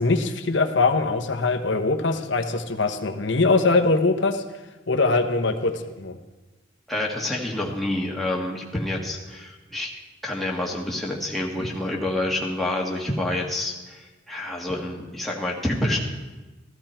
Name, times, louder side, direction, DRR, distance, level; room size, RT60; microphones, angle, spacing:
voice 1, 0.0-4.4 4.9-6.2, left 3 dB, 65° left, 6 dB, 1.0 m, -22 dB
voice 2, 6.9-9.9 10.2-16.0, left 1 dB, ahead, -3 dB, 1.7 m, -28 dB
15.0 x 13.0 x 4.4 m, 1.2 s
head